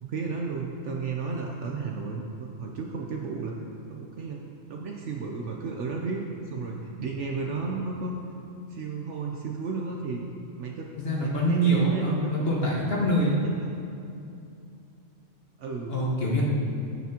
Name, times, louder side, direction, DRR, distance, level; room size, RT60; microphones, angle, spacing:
voice 1, 0.0-3.5 3.9-4.4 4.7-8.2 8.7-10.3 10.6-10.9 11.2-12.4 13.4-13.7 15.6-15.9 16.3-16.4, right 4 dB, 65° right, 0 dB, 0.9 m, -33 dB
voice 2, 11.0-13.4 15.9-16.4, right 1 dB, 45° left, -4 dB, 1.7 m, -24 dB
16.0 x 5.9 x 2.9 m, 2.6 s
omnidirectional pair, 1.4 m